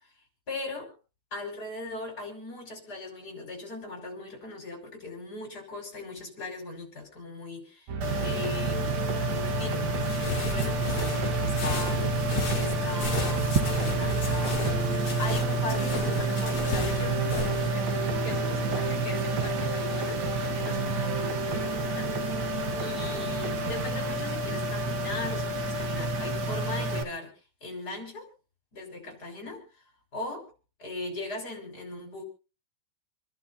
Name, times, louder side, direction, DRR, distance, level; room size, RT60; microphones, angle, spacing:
voice 1, 0.5-0.9 1.3-12.2 12.5-14.7 15.2-22.3 22.8-27.3 27.6-28.3 28.7-29.7 30.1-30.4 30.8-32.2, left 2 dB, 25° left, 6.1 m, -39 dB
sound 1, 7.9-24.1, right 6 dB, 60° right, 2.8 m, -33 dB
sound 2, 8.0-27.0, right 2 dB, 80° right, 0.9 m, -30 dB
sound 3, 9.9-17.7, left 4 dB, 45° left, 3.6 m, -35 dB
29.0 x 11.5 x 2.9 m
omnidirectional pair, 3.9 m